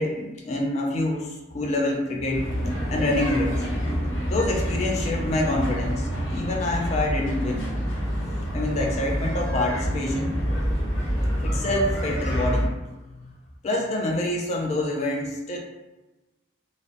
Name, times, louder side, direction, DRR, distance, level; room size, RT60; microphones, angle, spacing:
voice 1, 0.0-2.6 2.9-3.7 4.2-7.7 8.5-10.4 11.4-12.7 13.2-13.3 13.6-15.6, left 1 dB, 35° left, 0 dB, 0.3 m, -26 dB
sound 1, 2.3-12.7, equal, 75° left, 0.9 m, -27 dB
2.6 x 2.0 x 2.5 m, 1.1 s
head